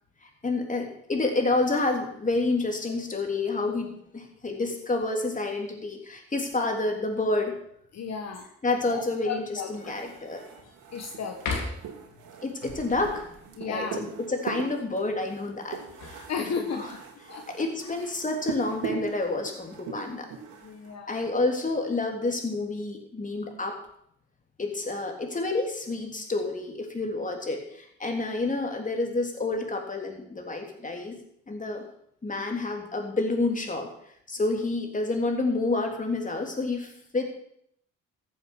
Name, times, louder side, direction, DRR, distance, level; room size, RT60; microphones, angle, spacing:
voice 1, 0.2-7.6 8.6-9.4 9.7-10.5 12.4-13.4 13.7-15.8 16.1-16.2 16.8-16.9 17.5-20.3 21.1-23.8 24.6-31.2 31.5-31.8 32.2-33.9 34.3-37.2, left 2 dB, 25° left, 3 dB, 3.4 m, -29 dB
voice 2, 7.9-8.5 8.9-10.0 10.9-11.6 13.5-14.0 16.3-17.0 17.3-17.4 17.8-17.9 20.6-21.3 34.4-34.5, left 5 dB, 60° left, 3 dB, 1.6 m, -35 dB
sound 1, 8.3-8.8 9.4-9.5 10.0-10.8 11.3-12.1 15.6-16.9 18.3-18.8, left 4 dB, 85° left, 3.3 m, -37 dB
sound 2, 9.7-20.9, right 7 dB, 90° right, 2.3 m, -40 dB
15.0 x 7.9 x 6.3 m, 0.71 s
cardioid pair, 90°, 30 cm